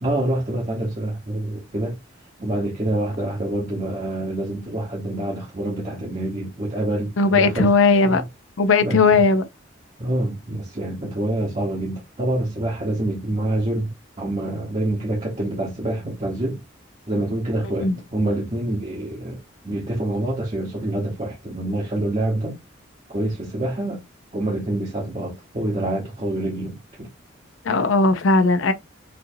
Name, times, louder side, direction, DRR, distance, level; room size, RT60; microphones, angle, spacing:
voice 1, 0.0-2.0 2.4-7.7 8.0-8.3 8.8-9.2 10.0-13.9 14.2-16.6 17.1-22.6 23.1-24.0 24.3-27.1, right 1 dB, 35° right, 0.9 m, -26 dB
voice 2, 7.2-8.2 8.6-9.4 17.8-17.9 27.7-28.7, left 3 dB, 85° left, 0.6 m, -17 dB
4.3 x 2.6 x 2.6 m
head